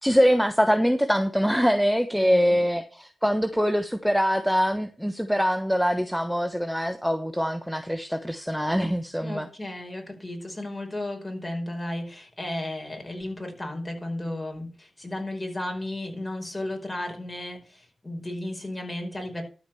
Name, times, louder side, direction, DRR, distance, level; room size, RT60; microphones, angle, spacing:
voice 1, 0.0-9.5, equal, ahead, 8 dB, 1.1 m, -23 dB
voice 2, 2.2-2.6 9.2-19.4, left 1 dB, 20° left, 3 dB, 5.2 m, -34 dB
12.5 x 5.1 x 7.0 m, 0.37 s
cardioid pair, 55°, 0 cm